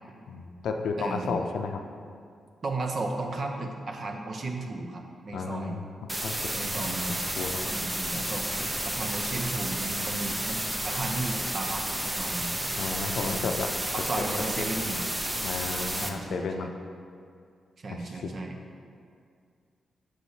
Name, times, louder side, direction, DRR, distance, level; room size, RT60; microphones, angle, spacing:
voice 1, 0.3-1.8 5.3-5.9 6.2-6.5 6.9-7.0 7.4-7.6 12.8-13.7 15.4-16.7 17.9-18.3, left 4 dB, 80° left, 4 dB, 0.4 m, -33 dB
voice 2, 1.0-1.5 2.6-5.8 6.5-7.2 7.6-12.5 13.2-13.5 13.9-15.0 15.9-16.7 17.8-18.6, right 2 dB, 55° right, 3 dB, 0.7 m, -35 dB
sound 1, 6.1-16.1, right 1 dB, 15° right, 0.5 m, -31 dB
6.3 x 6.2 x 2.8 m, 2.3 s
cardioid pair, 70°, 0 cm